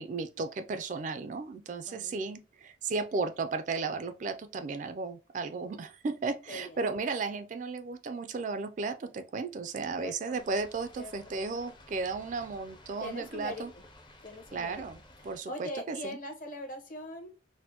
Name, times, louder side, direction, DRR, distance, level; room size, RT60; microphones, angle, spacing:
voice 1, 0.0-13.7 14.5-15.0 15.2-16.2, right 4 dB, 40° right, 0.3 m, -34 dB
voice 2, 1.9-2.4 6.5-6.8 10.0-10.4 11.0-11.1 13.0-13.6 14.2-14.8 15.2-17.3, left 1 dB, 45° left, 0.9 m, -41 dB
sound 1, 10.3-15.4, left 1 dB, 25° left, 0.5 m, -55 dB
4.2 x 2.1 x 2.8 m
head